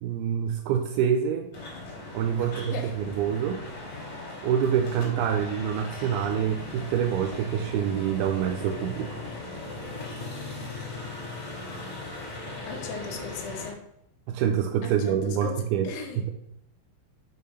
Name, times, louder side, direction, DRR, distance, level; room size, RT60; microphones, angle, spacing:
voice 1, 0.0-1.5 2.1-3.6 4.4-9.2 14.3-15.9 16.2-16.3, right 8 dB, 85° right, 5 dB, 2.4 m, -26 dB
sound 1, 1.5-13.7, left 2 dB, 40° left, 2.8 m, -38 dB
voice 2, 2.4-3.0 12.7-13.8 14.8-16.2, left 5 dB, 80° left, 2 dB, 1.4 m, -38 dB
6.3 x 5.6 x 5.5 m, 0.78 s
omnidirectional pair, 4.7 m